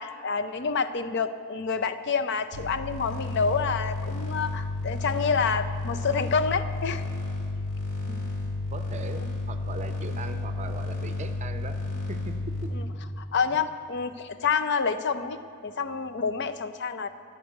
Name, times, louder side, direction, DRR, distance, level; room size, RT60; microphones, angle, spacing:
voice 1, 0.0-7.0 12.7-12.8 13.2-15.4 15.6-17.1, left 5 dB, 50° left, 10 dB, 0.5 m, -28 dB
sound 1, 2.5-12.7, left 2 dB, 75° left, 2.2 m, -32 dB
voice 2, 8.7-11.8 12.1-12.4 12.6-12.7, right 3 dB, 30° right, 8 dB, 0.5 m, -39 dB
9.8 x 6.6 x 8.8 m, 2.3 s
head